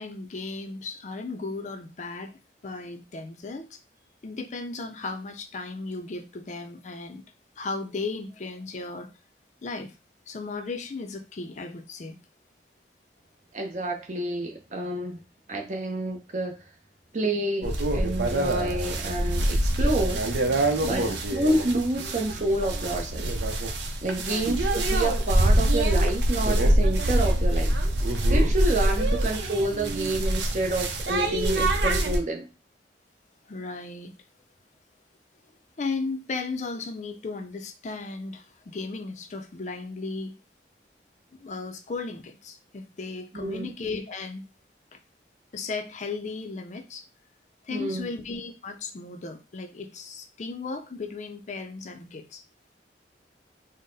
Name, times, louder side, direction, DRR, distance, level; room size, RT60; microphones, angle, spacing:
voice 1, 0.0-3.8 4.2-7.2 7.6-9.1 9.6-9.9 10.3-12.2 20.9-21.2 24.2-24.6 28.9-29.1 33.5-34.1 35.8-40.3 41.4-44.4 44.9-45.0 45.5-47.0 47.6-52.4, left 3 dB, 40° left, 7 dB, 0.4 m, -35 dB
voice 2, 13.5-15.2 15.5-16.6 17.1-20.2 20.8-21.0 21.3-23.3 24.0-27.7 28.3-32.5 43.3-43.7 47.7-48.1, right 1 dB, 40° right, 2 dB, 0.7 m, -28 dB
sound 1, 17.6-32.2, right 1 dB, 80° right, 0.7 m, -25 dB
3.8 x 2.1 x 3.9 m, 0.29 s
head